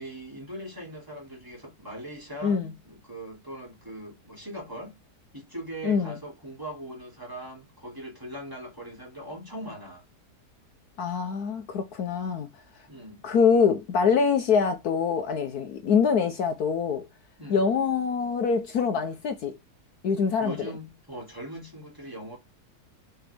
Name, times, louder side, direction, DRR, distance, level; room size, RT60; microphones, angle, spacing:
voice 1, 0.0-2.6 2.8-5.0 5.3-10.0 12.9-13.2 17.4-17.6 20.4-22.4, right 1 dB, 10° right, 2.8 m, -40 dB
voice 2, 2.4-2.7 5.8-6.1 11.0-12.5 13.2-17.1 17.5-19.6 20.0-20.7, left 6 dB, 65° left, 1.3 m, -24 dB
7.7 x 4.6 x 3.5 m
omnidirectional pair, 1.9 m